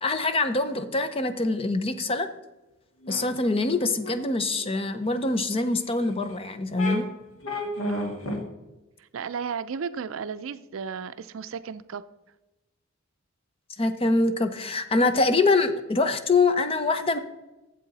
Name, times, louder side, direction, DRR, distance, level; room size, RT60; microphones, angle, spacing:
voice 1, 0.0-2.3 3.1-7.1 13.8-17.2, left 3 dB, 25° left, 10 dB, 0.6 m, -24 dB
sound 1, 3.0-3.2 4.0-4.1 4.6-4.7 6.0-6.1 6.8-7.0 7.4-8.4, left 1 dB, 70° left, 1.5 m, -31 dB
voice 2, 7.9-8.3 9.0-12.0, right 6 dB, 65° right, 13 dB, 0.4 m, -34 dB
12.0 x 7.6 x 4.1 m, 1.1 s
head